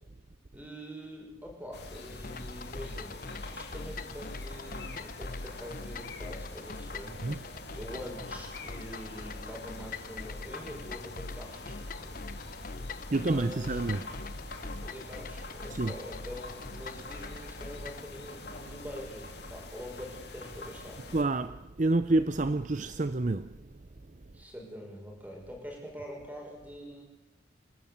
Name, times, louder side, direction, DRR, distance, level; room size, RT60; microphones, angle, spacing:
voice 1, 0.5-3.2 3.5-12.4 13.1-13.8 14.8-21.1 24.3-27.0, equal, 10° right, 6.3 m, -45 dB
sound 1, 1.7-21.2, left 2 dB, 65° left, 3.2 m, -45 dB
sound 2, 2.2-18.1, left 3 dB, 50° left, 0.9 m, -43 dB
voice 2, 13.1-14.0 15.7-15.9 21.1-23.6, right 2 dB, 45° right, 0.7 m, -28 dB
28.0 x 12.5 x 8.8 m
head